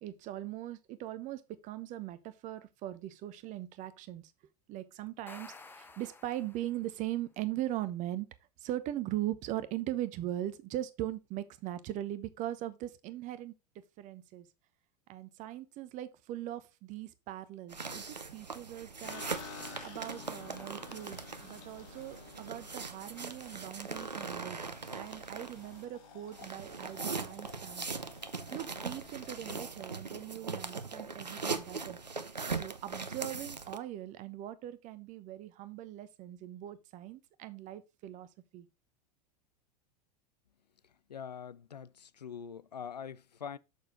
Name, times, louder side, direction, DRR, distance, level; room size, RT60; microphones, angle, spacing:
voice 1, 0.0-4.3 4.7-8.3 8.6-13.5 14.0-14.5 15.1-19.2 19.8-24.6 24.9-27.9 28.5-32.0 32.5-38.3 38.5-38.7, right 13 dB, 35° right, 0.9 m, -40 dB
sound 1, 5.1-7.0, left 3 dB, 10° left, 0.9 m, -52 dB
sound 2, 17.7-25.8 26.3-33.8, right 4 dB, 90° right, 0.8 m, -40 dB
sound 3, 19.0-31.3 31.6-32.2 32.5-32.6 32.9-33.6, left 5 dB, 50° left, 2.5 m, -52 dB
voice 2, 41.1-43.6, left 7 dB, 80° left, 0.5 m, -44 dB
6.7 x 6.5 x 3.8 m
figure-of-eight pair, 90°, 21 cm